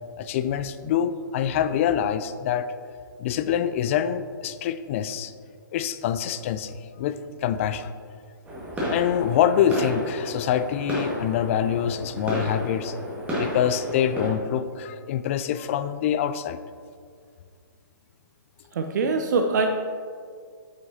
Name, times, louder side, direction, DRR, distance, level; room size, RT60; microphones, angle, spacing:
voice 1, 0.2-2.7 3.2-5.3 5.7-7.9 8.9-13.0 13.4-16.6, left 9 dB, 40° left, 12 dB, 0.4 m, -25 dB
sound 1, 8.5-14.3, equal, 10° right, 1.7 m, -31 dB
voice 2, 18.7-19.7, right 4 dB, 60° right, 5 dB, 0.5 m, -23 dB
9.1 x 6.2 x 2.8 m, 2.1 s
hypercardioid pair, 130°, 11 cm